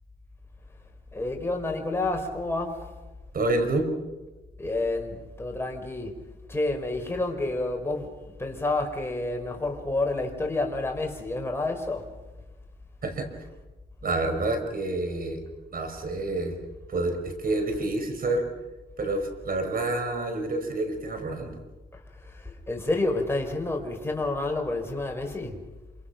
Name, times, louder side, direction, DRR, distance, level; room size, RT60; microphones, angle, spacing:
voice 1, 1.1-2.9 4.6-6.2 6.5-12.1 21.9-25.6, left 2 dB, 15° left, 4.7 m, -29 dB
voice 2, 3.3-3.9 13.0-13.3 14.0-15.4 15.7-16.6 16.9-18.4 19.0-21.6, right 2 dB, 50° right, 5.6 m, -28 dB
27.5 x 25.5 x 6.0 m
cardioid pair, 90°, 19 cm